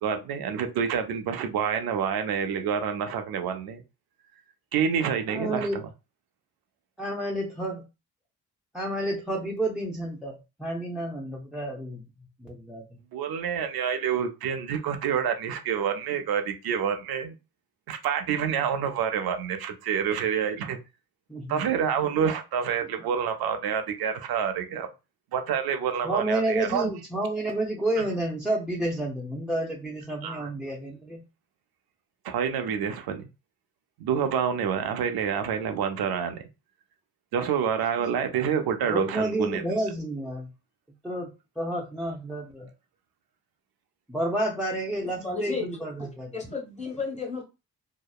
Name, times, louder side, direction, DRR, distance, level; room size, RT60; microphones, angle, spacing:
voice 1, 0.0-3.8 4.7-5.9 13.1-17.4 17.9-20.8 21.5-24.9 25.3-26.9 28.0-28.1 30.2-30.5 32.2-33.3 34.0-36.4 37.3-39.6, right 7 dB, 80° right, 0.5 m, -28 dB
voice 2, 5.3-5.8 7.0-7.8 8.7-12.0 12.4-12.8 21.3-21.6 26.0-31.2 38.8-40.5 41.0-42.7 44.1-46.3, right 1 dB, ahead, 0.7 m, -30 dB
voice 3, 45.0-45.7 46.0-46.1 46.3-47.4, left 4 dB, 20° left, 1.4 m, -33 dB
2.8 x 2.0 x 2.3 m
supercardioid pair, 60°, 37 cm